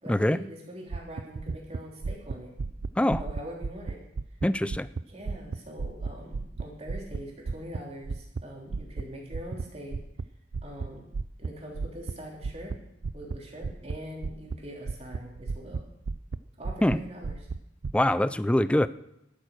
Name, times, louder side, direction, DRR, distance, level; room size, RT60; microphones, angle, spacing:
voice 1, 0.0-2.5 3.2-4.0 5.0-10.0 10.6-11.1 11.4-15.8 16.6-17.5, equal, 35° right, -1 dB, 3.5 m, -43 dB
sound 1, 0.9-5.0 5.3-8.4 8.7-9.0 9.3-9.6 9.9-10.3 10.5-10.9 11.1-11.5 11.7-12.1 12.4-12.8 13.0-13.4 13.6-14.0 14.2-14.6 14.9-16.4 16.6-17.0 17.2-17.9, right 4 dB, 60° right, 0.4 m, -33 dB
voice 2, 4.4-4.9 16.8-17.0 17.9-18.9, left 1 dB, 5° left, 16 dB, 0.3 m, -23 dB
12.0 x 8.9 x 6.6 m, 0.85 s
head